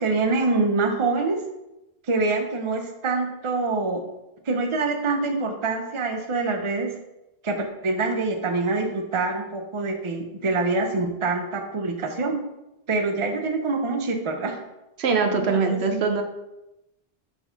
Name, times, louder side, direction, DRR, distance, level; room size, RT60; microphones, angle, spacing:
voice 1, 0.0-1.4 2.1-4.0 4.5-6.9 7.4-12.4 12.9-14.6 15.3-16.0, right 3 dB, 35° right, 4 dB, 0.7 m, -25 dB
voice 2, 15.0-16.2, right 4 dB, 85° right, 5 dB, 1.0 m, -22 dB
4.5 x 4.4 x 5.6 m, 0.93 s
omnidirectional pair, 1.1 m